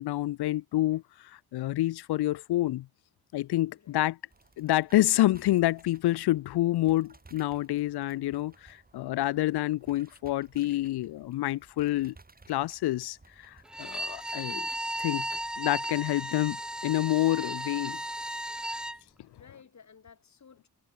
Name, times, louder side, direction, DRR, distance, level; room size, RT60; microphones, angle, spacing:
voice 1, 0.0-2.9 3.3-4.2 4.6-12.1 12.5-14.7 15.0-15.3 15.6-16.6 16.8-18.0, left 15 dB, 90° left, 0.5 m, -28 dB
voice 2, 3.7-4.0 16.3-16.5 19.3-20.7, left 6 dB, 45° left, 3.1 m, -55 dB
sound 1, 4.3-17.0, right 3 dB, 25° right, 6.3 m, -59 dB
Bowed string instrument, 13.7-19.0, equal, ahead, 0.6 m, -35 dB
wide cardioid pair, 120°, 38 cm